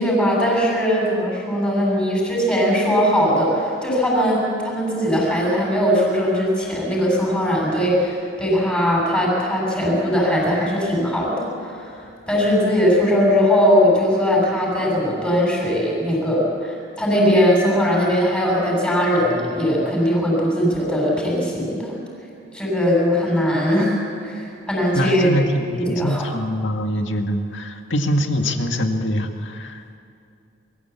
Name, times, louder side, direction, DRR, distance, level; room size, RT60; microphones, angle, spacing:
voice 1, 0.0-11.9 12.3-21.9 22.5-24.0 24.2-25.3 25.7-26.3, equal, 5° left, -4 dB, 7.2 m, -20 dB
voice 2, 25.0-30.0, equal, 75° left, 4 dB, 1.9 m, -24 dB
22.5 x 15.0 x 8.3 m, 2.6 s
head